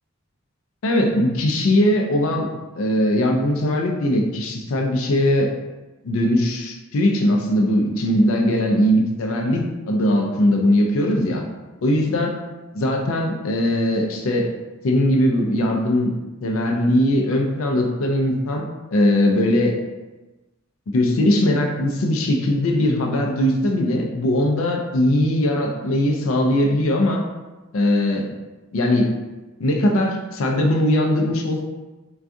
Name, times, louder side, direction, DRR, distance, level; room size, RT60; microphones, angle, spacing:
voice 1, 0.8-2.5 2.7-5.5 6.0-11.4 11.8-12.4 12.8-14.5 14.8-16.1 16.4-18.7 18.9-19.8 20.9-27.2 27.7-28.3 28.7-29.1 29.6-31.6, left 1 dB, 80° left, 2 dB, 0.4 m, -20 dB
3.5 x 2.3 x 2.6 m, 1.1 s
head